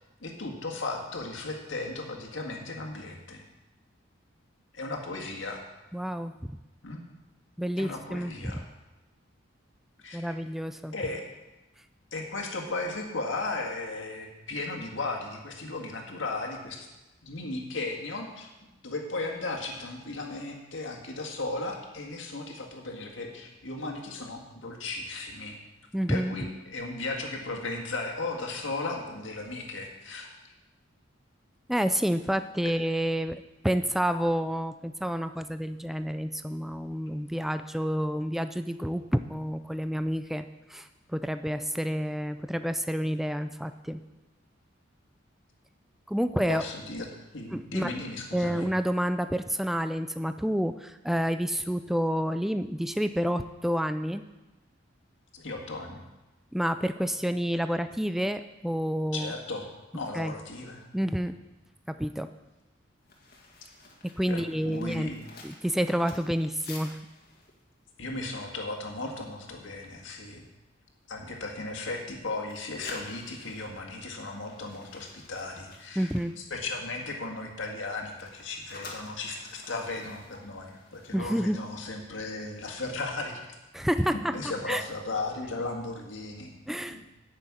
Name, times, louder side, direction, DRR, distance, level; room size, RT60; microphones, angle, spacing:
voice 1, 0.2-3.4 4.7-5.6 6.8-7.0 7.8-8.6 10.0-10.4 10.9-11.2 12.1-16.9 17.2-18.5 18.8-25.6 26.1-30.3 32.6-32.7 46.5-47.1 47.3-48.7 55.3-56.0 59.1-59.7 59.9-60.8 64.3-65.1 68.0-70.4 71.1-76.1 76.4-83.4 84.3-86.5 86.9-87.0, left 2 dB, 70° left, 1 dB, 1.9 m, -36 dB
voice 2, 5.9-6.6 7.6-8.6 10.1-10.9 25.9-26.4 31.7-44.0 46.1-46.6 47.5-47.9 48.3-54.3 56.5-59.3 60.1-60.3 60.9-61.4 61.9-62.3 64.0-65.1 65.4-67.0 76.0-76.4 81.1-81.6 83.7-84.8 86.7-87.0, equal, ahead, 10 dB, 0.3 m, -29 dB
sound 1, 63.0-69.1 69.5-69.7 70.1-70.4 70.9-72.1 72.4-77.2 77.4-81.9 82.2-82.4, left 3 dB, 50° left, 1.9 m, -50 dB
9.8 x 6.6 x 8.6 m, 1.0 s
head